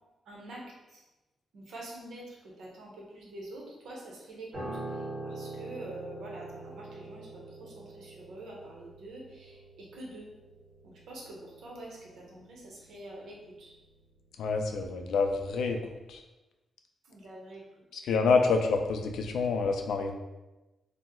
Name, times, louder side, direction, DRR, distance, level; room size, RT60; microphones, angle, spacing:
voice 1, 0.3-1.0 1.5-10.3 10.8-13.7 17.0-17.6 17.9-18.0, right 1 dB, 80° right, -2 dB, 0.8 m, -46 dB
Piano, 4.5-13.9 14.2-14.4, right 2 dB, 45° right, 1.4 m, -44 dB
voice 2, 14.4-15.8 16.1-16.2 18.0-20.1, left 4 dB, 85° left, 4 dB, 0.3 m, -27 dB
2.8 x 2.0 x 3.6 m, 1.1 s
wide cardioid pair, 165°, 0 cm